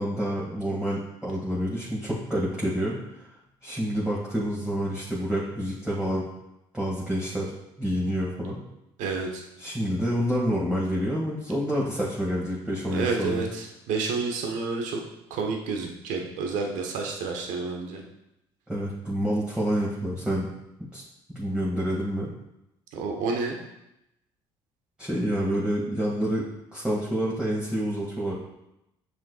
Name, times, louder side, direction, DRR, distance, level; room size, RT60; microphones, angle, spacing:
voice 1, 0.0-3.3 3.6-6.3 6.7-7.5 7.8-8.6 9.6-13.5 18.7-20.5 20.9-21.0 21.3-22.3 25.0-26.5 26.7-28.4, equal, 10° right, -6 dB, 2.0 m, -28 dB
voice 2, 9.0-9.4 12.9-15.0 15.3-18.0 22.9-23.6, right 4 dB, 70° right, 2 dB, 1.2 m, -29 dB
7.3 x 6.4 x 2.4 m, 0.86 s
supercardioid pair, 70°, 13 cm